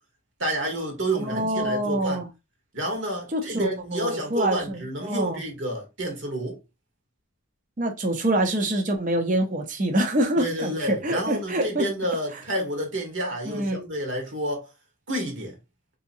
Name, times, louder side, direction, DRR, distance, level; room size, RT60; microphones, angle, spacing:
voice 1, 0.4-2.2 2.7-6.6 10.4-14.7 15.1-15.5, right 1 dB, 60° right, 1.2 m, -29 dB
voice 2, 1.2-2.3 3.3-5.4 7.8-11.9 13.5-13.8, right 1 dB, 40° right, 0.6 m, -26 dB
3.7 x 2.8 x 2.6 m
head